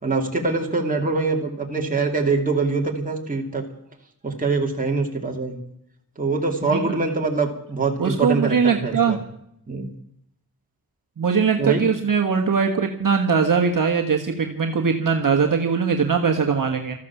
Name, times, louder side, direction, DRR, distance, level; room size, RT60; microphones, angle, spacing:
voice 1, 0.0-3.6 4.2-5.6 6.2-9.2 9.7-9.9 11.6-11.8, right 3 dB, 20° right, 0 dB, 2.8 m, -24 dB
voice 2, 8.0-9.2 11.2-16.9, right 5 dB, 60° right, 2 dB, 1.5 m, -21 dB
14.0 x 13.5 x 7.2 m, 0.73 s
wide cardioid pair, 145°, 36 cm